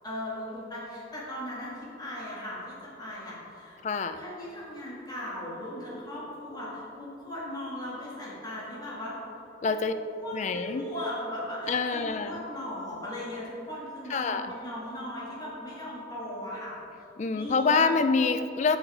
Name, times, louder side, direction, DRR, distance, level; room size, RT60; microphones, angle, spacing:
voice 1, 0.0-3.8 4.1-9.2 9.6-16.7 17.3-18.0, left 1 dB, 20° left, -8 dB, 1.8 m, -38 dB
voice 2, 3.8-4.2 9.6-9.9 10.3-10.8 11.7-12.5 14.1-14.5 17.2-18.8, left 4 dB, 35° left, 9 dB, 0.3 m, -26 dB
7.7 x 6.3 x 4.9 m, 3.0 s
head